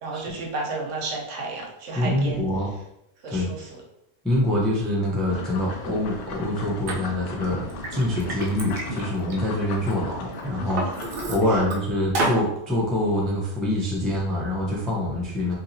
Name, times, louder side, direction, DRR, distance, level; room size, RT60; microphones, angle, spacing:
voice 1, 0.0-2.5 3.2-3.8 10.6-10.9 11.4-11.6, right 3 dB, 80° right, 0 dB, 1.1 m, -33 dB
voice 2, 1.9-2.7 3.3-3.5 4.2-7.6 7.9-10.8 11.3-15.5, left 1 dB, ahead, -5 dB, 0.4 m, -25 dB
sound 1, 5.3-11.3, left 3 dB, 75° left, 0.9 m, -37 dB
Liquid, 6.9-7.0 7.5-9.9 10.3-11.8 12.1-12.4, right 2 dB, 55° right, 0.7 m, -30 dB
2.8 x 2.8 x 2.6 m, 0.80 s
omnidirectional pair, 1.3 m